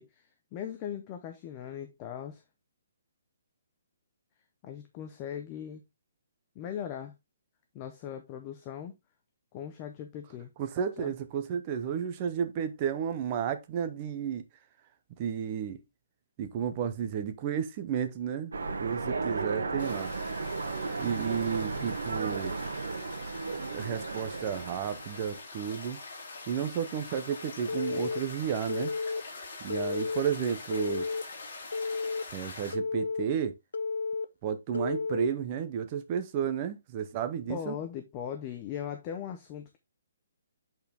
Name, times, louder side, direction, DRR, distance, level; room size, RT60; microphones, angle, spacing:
voice 1, 0.0-2.4 4.6-5.8 6.6-7.1 7.7-9.0 9.5-10.5 11.0-11.1 21.6-22.2 37.5-39.8, left 9 dB, 15° left, 0.6 m, -39 dB
voice 2, 10.6-14.4 15.2-15.8 16.4-18.5 18.8-20.1 21.0-22.5 23.7-26.0 26.5-28.9 29.6-31.1 32.3-33.5 34.4-37.7, right 8 dB, 20° right, 0.7 m, -32 dB
Train, 18.5-25.4, right 4 dB, 80° right, 1.7 m, -35 dB
sound 1, 19.8-32.7, left 3 dB, 40° left, 3.3 m, -44 dB
Telephone, 27.7-28.2 28.7-29.2 29.7-30.2 30.7-31.2 31.7-32.2 32.7-33.2 33.7-34.2 34.7-35.3, left 4 dB, 65° left, 0.8 m, -32 dB
8.2 x 4.4 x 3.4 m
hypercardioid pair, 180°, 0 cm